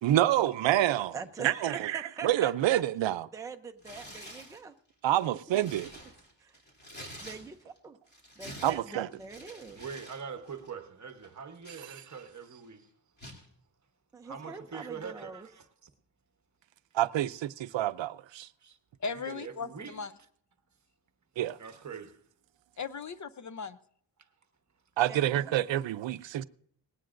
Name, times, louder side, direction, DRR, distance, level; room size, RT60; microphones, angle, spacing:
voice 1, 0.0-3.3 5.0-5.9 8.6-9.1 16.9-18.5 21.4-21.6 25.0-26.4, right 13 dB, 85° right, 0.5 m, -28 dB
voice 2, 1.1-2.8 3.3-4.8 6.4-6.5 7.2-8.0 8.4-9.8 14.1-15.5 25.1-25.6 26.2-26.3, right 5 dB, 10° right, 0.5 m, -43 dB
Tearing, 3.8-4.6 5.1-7.8 8.1-10.2 10.5-10.7 11.2-12.4 13.2-13.5, equal, 20° left, 2.9 m, -48 dB
voice 3, 9.8-12.9 14.2-15.7 18.6-18.8 19.1-20.0 21.6-22.2 24.2-24.3, right 6 dB, 40° right, 1.0 m, -43 dB
voice 4, 19.0-20.1 22.8-23.8, left 5 dB, 40° left, 0.5 m, -37 dB
19.0 x 17.0 x 2.5 m
wide cardioid pair, 170°, 44 cm